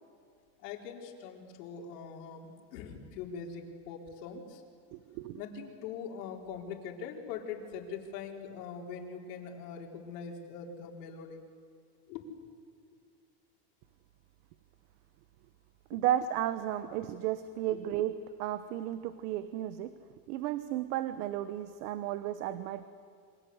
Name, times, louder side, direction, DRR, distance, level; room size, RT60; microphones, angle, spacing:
voice 1, 0.6-4.6 5.4-11.4 12.1-12.2 15.9-16.0 17.7-17.8, left 6 dB, 80° left, 1 dB, 4.6 m, -42 dB
voice 2, 4.9-5.4 15.9-20.0 20.3-22.9, right 12 dB, 70° right, 12 dB, 1.2 m, -33 dB
28.5 x 24.5 x 8.0 m, 2.2 s
cardioid pair, 160°, 47 cm